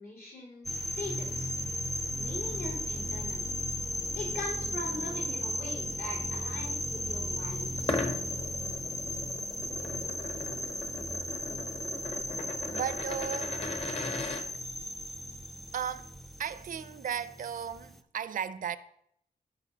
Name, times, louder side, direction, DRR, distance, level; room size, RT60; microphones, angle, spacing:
voice 1, 0.0-1.5 2.1-3.4 4.1-8.0, left 2 dB, 80° left, 3.7 m, -41 dB
sound 1, 0.6-18.0, equal, ahead, 0.4 m, -36 dB
sound 2, 7.8-14.4, left 3 dB, 40° left, 0.9 m, -38 dB
voice 2, 12.7-13.6 15.7-16.1 16.4-18.8, right 8 dB, 65° right, 0.4 m, -35 dB
15.0 x 5.4 x 2.8 m
wide cardioid pair, 175°, 15 cm